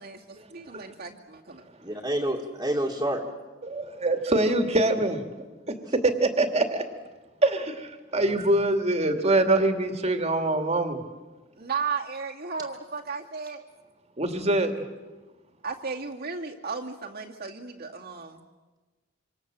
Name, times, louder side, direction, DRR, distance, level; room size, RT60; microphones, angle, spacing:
voice 1, 0.0-1.6 11.6-13.6 15.6-18.4, right 5 dB, 55° right, -1 dB, 2.4 m, -35 dB
voice 2, 1.8-3.2 8.1-8.2, right 1 dB, 20° right, -4 dB, 2.5 m, -28 dB
voice 3, 3.6-5.2 6.0-6.8 7.4-11.0 14.2-14.8, right 2 dB, 35° right, 6 dB, 2.5 m, -24 dB
26.5 x 26.0 x 7.7 m, 1.2 s
head